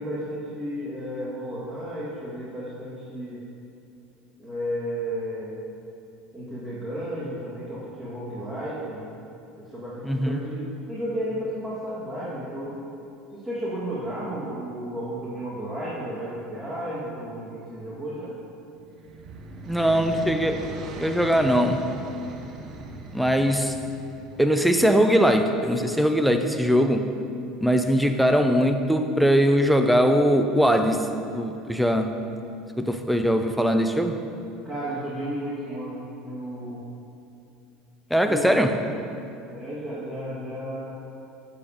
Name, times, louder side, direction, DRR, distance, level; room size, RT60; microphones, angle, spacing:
voice 1, 0.0-3.4 4.4-5.5 6.3-9.1 9.6-12.8 13.3-18.3 34.6-36.8 38.2-38.6 39.5-40.9, equal, 20° right, -10 dB, 1.9 m, -33 dB
voice 2, 10.1-10.4 19.7-20.6 21.0-21.8 23.1-23.7 24.4-27.1 27.6-31.1 31.3-32.1 32.8-34.2 38.1-38.7, equal, ahead, 6 dB, 0.6 m, -21 dB
sound 1, 18.7-24.8, right 3 dB, 45° right, 0.8 m, -39 dB
8.2 x 7.0 x 5.0 m, 2.6 s
supercardioid pair, 130°, 0 cm